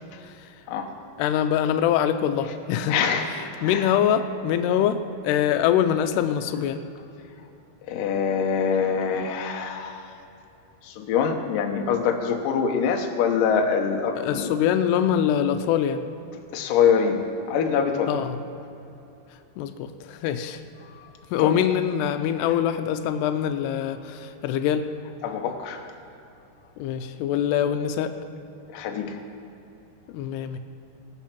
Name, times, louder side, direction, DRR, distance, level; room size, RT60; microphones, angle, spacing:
voice 1, 1.2-3.0 3.3-6.8 14.2-16.1 18.1-18.4 19.6-20.6 21.3-24.9 26.8-28.1 30.1-30.6, left 9 dB, 85° left, 9 dB, 2.6 m, -24 dB
voice 2, 2.9-3.3 3.6-3.9 7.9-10.0 10.8-14.5 16.5-17.2 17.5-18.1 20.8-21.0 21.4-21.6 25.2-25.8 28.7-29.2, left 6 dB, 70° left, 3 dB, 2.3 m, -24 dB
20.5 x 8.0 x 5.9 m, 2.8 s
omnidirectional pair, 4.7 m